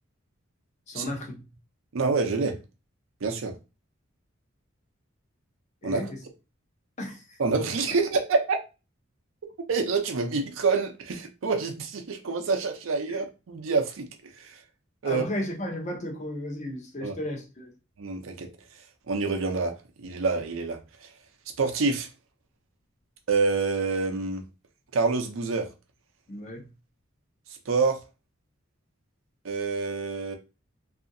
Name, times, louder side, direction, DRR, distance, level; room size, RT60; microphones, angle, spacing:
voice 1, 0.9-1.4 5.8-6.2 7.0-7.4 13.1-13.2 15.0-17.7 26.3-26.7, left 1 dB, 35° left, 0.6 m, -34 dB
voice 2, 1.9-2.5 3.2-3.5 5.8-6.0 7.4-8.6 9.7-14.1 14.4-14.5 15.0-15.2 17.0-17.1 18.0-18.5 19.1-20.8 21.6-22.1 23.3-24.4 24.9-25.7 27.7-28.0 29.4-30.3, right 4 dB, 75° right, 0.5 m, -27 dB
2.7 x 2.4 x 2.5 m
head